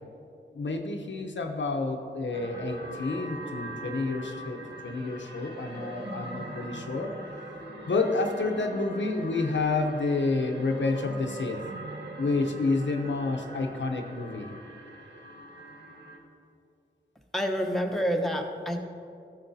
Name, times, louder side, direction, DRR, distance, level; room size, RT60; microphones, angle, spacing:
voice 1, 0.5-7.1 7.9-11.6 12.2-14.5, left 3 dB, 65° left, 4 dB, 0.7 m, -29 dB
sound 1, 2.3-16.2, right 1 dB, 65° right, 1.4 m, -42 dB
voice 2, 17.3-18.9, equal, ahead, 2 dB, 0.9 m, -28 dB
13.0 x 6.5 x 2.7 m, 2.6 s
cardioid pair, 45°, 20 cm